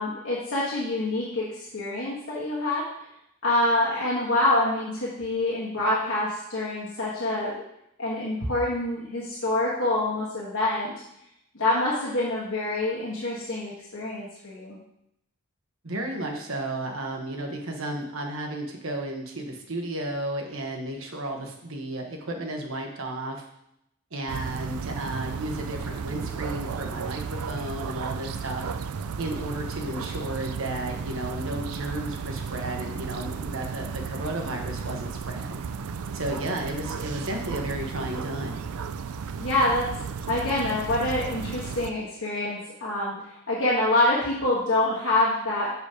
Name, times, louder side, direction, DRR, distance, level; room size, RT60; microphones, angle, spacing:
voice 1, 0.0-2.9 3.4-7.6 8.0-10.9 11.5-14.7 39.4-39.9 40.3-43.1 43.5-45.7, left 2 dB, 60° left, -7 dB, 1.4 m, -26 dB
voice 2, 15.8-23.4 24.1-28.7 29.2-35.6 36.1-38.6, right 1 dB, 65° right, 2 dB, 1.2 m, -33 dB
sound 1, 24.3-41.9, right 6 dB, 85° right, 0.4 m, -34 dB
6.4 x 5.0 x 4.9 m, 0.79 s
head